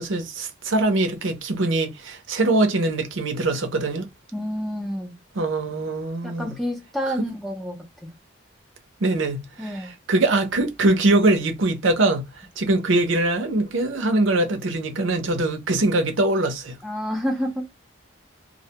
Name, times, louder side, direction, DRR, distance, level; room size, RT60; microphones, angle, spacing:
voice 1, 0.0-4.1 5.4-6.5 9.0-12.3 12.6-16.7, right 2 dB, 70° right, 0.6 m, -22 dB
voice 2, 4.3-5.1 6.2-7.8 8.0-8.1 9.6-9.9 16.8-17.8, equal, ahead, 0.6 m, -29 dB
2.1 x 2.1 x 2.8 m
head